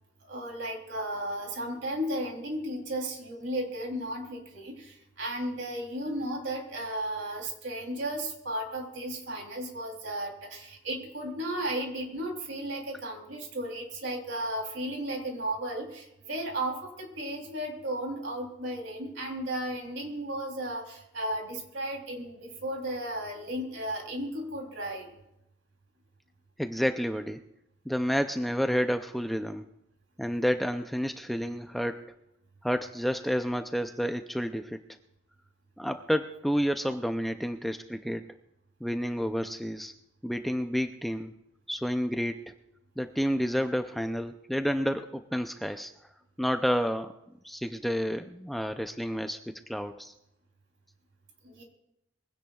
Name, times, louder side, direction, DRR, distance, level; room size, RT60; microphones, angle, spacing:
voice 1, 0.2-25.1 51.4-51.6, right 1 dB, 65° right, 2 dB, 3.2 m, -34 dB
voice 2, 26.6-27.4 27.9-29.6 30.2-32.1 32.6-34.8 35.8-38.2 38.8-39.9 40.2-41.4 41.7-42.6 43.0-45.9 46.4-47.2 47.4-50.1, equal, ahead, 7 dB, 0.4 m, -30 dB
22.5 x 16.5 x 2.4 m, 0.85 s
head